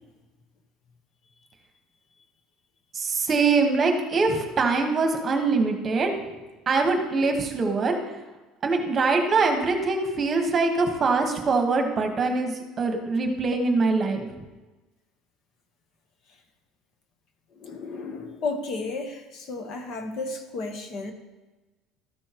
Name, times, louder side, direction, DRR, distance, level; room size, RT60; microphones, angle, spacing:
voice 1, 2.9-6.1 6.7-8.2 8.6-14.3, right 4 dB, 30° right, 1.2 m, -23 dB
voice 2, 17.6-21.1, left 3 dB, 50° left, 1.1 m, -33 dB
13.0 x 6.3 x 3.0 m
cardioid pair, 140°, 0 cm